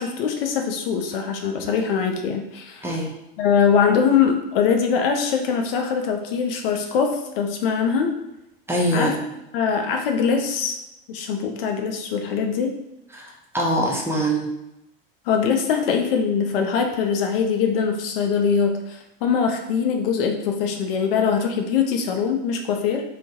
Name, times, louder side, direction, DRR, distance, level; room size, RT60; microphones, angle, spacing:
voice 1, 0.0-2.8 3.4-8.2 8.9-9.2 9.5-10.8 11.1-12.8 15.3-23.0, left 6 dB, 75° left, 3 dB, 0.5 m, -22 dB
voice 2, 2.8-3.1 8.7-9.3 13.1-14.5, right 1 dB, 10° right, -2 dB, 0.5 m, -23 dB
2.3 x 2.1 x 2.7 m, 0.88 s
hypercardioid pair, 85°, 29 cm